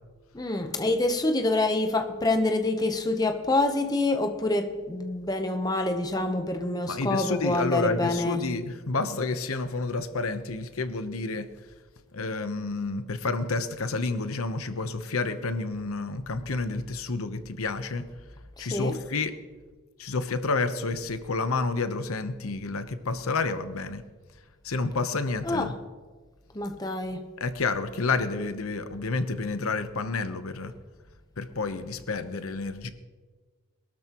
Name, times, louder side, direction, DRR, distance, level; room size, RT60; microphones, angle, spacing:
voice 1, 0.3-8.5 18.6-19.0 25.4-25.7 26.5-27.2, left 2 dB, 20° left, 0.8 m, -26 dB
voice 2, 6.9-11.5 12.1-18.0 18.6-19.3 20.0-24.0 24.6-25.7 27.4-30.7 31.4-32.9, left 3 dB, 90° left, 0.9 m, -29 dB
22.0 x 12.5 x 3.0 m
head